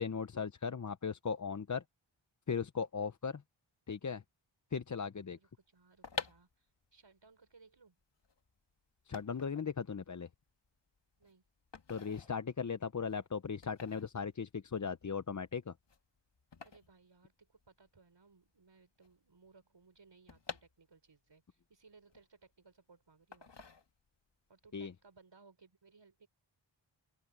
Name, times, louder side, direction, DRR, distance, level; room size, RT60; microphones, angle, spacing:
voice 1, 0.0-1.8 2.5-3.4 3.9-4.2 4.7-5.4 9.1-10.3 11.9-15.7 24.7-24.9, left 6 dB, 40° left, 0.7 m, -37 dB
voice 2, 5.4-8.0 11.2-11.4 16.6-23.5 24.5-26.3, right 4 dB, 60° right, 5.7 m, -63 dB
sound 1, 5.8-17.9 18.2-18.3 18.4-21.3 21.7-22.8 23.3-24.3 24.7-24.9, left 5 dB, 60° left, 2.1 m, -49 dB
open air
wide cardioid pair, 80°, 48 cm